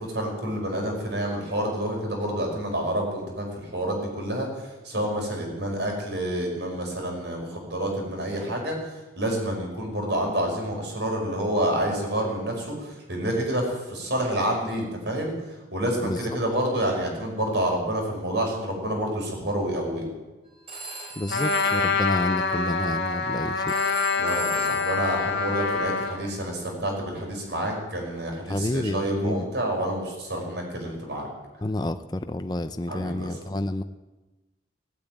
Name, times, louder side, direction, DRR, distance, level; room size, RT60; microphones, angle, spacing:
voice 1, 0.0-4.5 4.8-8.8 9.2-15.3 15.7-20.1 24.2-31.3 32.9-33.3, right 1 dB, 65° right, 1 dB, 5.3 m, -28 dB
voice 2, 16.0-16.4 21.2-23.7 28.5-29.5 31.6-33.8, left 1 dB, 20° left, 9 dB, 0.5 m, -29 dB
Telephone, 20.7-26.2, right 1 dB, 30° right, 4.7 m, -41 dB
Trumpet, 21.3-26.2, left 4 dB, 60° left, 1.6 m, -26 dB
17.5 x 8.8 x 9.1 m, 1.1 s
head